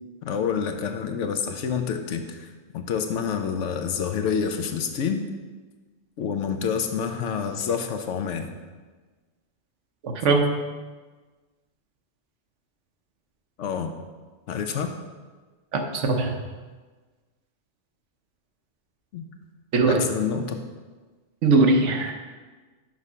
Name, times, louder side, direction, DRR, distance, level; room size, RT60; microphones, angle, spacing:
voice 1, 0.2-2.5 2.7-5.3 6.2-8.5 13.6-13.9 14.5-14.9 19.1-19.3 19.9-20.6, left 6 dB, 85° left, 7 dB, 1.0 m, -28 dB
voice 2, 10.0-10.6 15.7-16.4 19.7-20.0 21.4-22.1, right 3 dB, 85° right, 4 dB, 1.2 m, -20 dB
6.3 x 5.6 x 4.9 m, 1.3 s
omnidirectional pair, 1.2 m